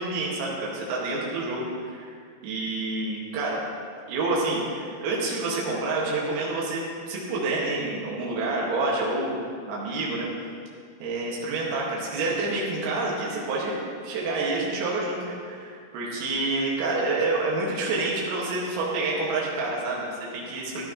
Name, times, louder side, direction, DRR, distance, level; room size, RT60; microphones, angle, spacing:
voice 1, 0.0-2.2 2.4-3.6 4.1-9.4 9.7-10.3 11.0-20.8, right 2 dB, 80° right, -5 dB, 4.8 m, -28 dB
15.0 x 15.0 x 3.2 m, 2.1 s
omnidirectional pair, 5.9 m